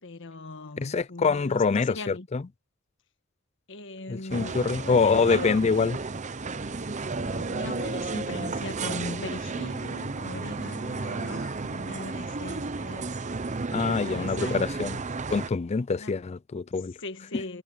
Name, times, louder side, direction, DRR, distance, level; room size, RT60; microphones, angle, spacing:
voice 1, 0.0-2.3 3.7-5.6 7.2-13.1 13.7-14.8 15.9-16.2 17.0-17.6, left 2 dB, 60° left, 1.5 m, -39 dB
voice 2, 0.8-2.4 4.1-6.0 13.7-15.0 15.3-16.9, left 4 dB, 30° left, 0.4 m, -25 dB
sound 1, 4.3-15.5, right 3 dB, 35° right, 0.7 m, -33 dB
head